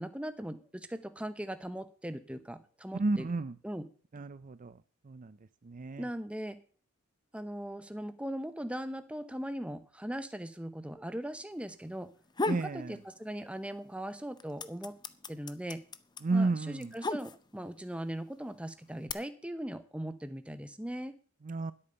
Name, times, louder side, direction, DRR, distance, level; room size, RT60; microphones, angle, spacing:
voice 1, 0.0-3.3 3.6-3.9 6.0-6.6 7.3-12.1 12.5-14.9 15.3-15.8 16.3-21.2, right 1 dB, 5° right, 10 dB, 0.9 m, -39 dB
voice 2, 2.9-3.5 4.1-4.7 5.1-5.3 5.6-6.1 12.5-12.9 16.2-16.9 21.5-21.7, right 3 dB, 35° right, 14 dB, 0.5 m, -32 dB
sound 1, 12.1-12.7 13.1-13.9 14.1-17.7 18.5-19.1, left 3 dB, 20° left, 0.6 m, -35 dB
11.5 x 8.6 x 6.8 m, 0.41 s
head